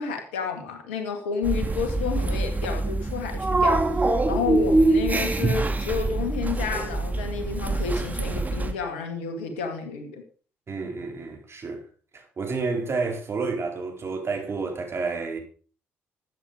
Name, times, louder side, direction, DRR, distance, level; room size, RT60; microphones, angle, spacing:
voice 1, 0.0-10.2, left 5 dB, 85° left, 2.1 m, -30 dB
sound 1, 1.4-8.7, right 2 dB, 25° right, 2.5 m, -24 dB
voice 2, 10.7-11.8 12.1-15.4, right 4 dB, 45° right, 4.3 m, -30 dB
13.5 x 8.9 x 5.0 m
hypercardioid pair, 45°, 6 cm